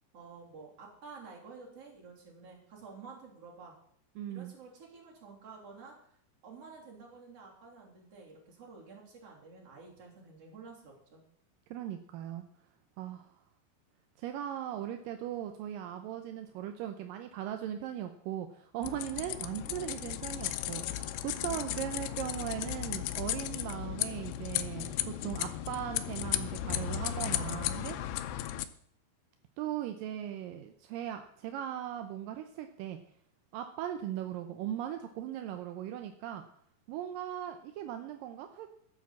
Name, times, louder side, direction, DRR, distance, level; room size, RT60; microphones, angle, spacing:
voice 1, 0.1-3.8 4.3-5.9 6.4-11.2, right 4 dB, 40° right, -2 dB, 3.9 m, -51 dB
voice 2, 4.2-4.5 11.7-12.4 13.0-13.3 14.2-28.3 29.6-33.0 33.5-36.5 36.9-38.7, right 11 dB, 80° right, 7 dB, 2.1 m, -39 dB
sound 1, 18.8-28.7, left 12 dB, 90° left, 2.7 m, -35 dB
12.5 x 7.6 x 7.3 m, 0.67 s
omnidirectional pair, 4.6 m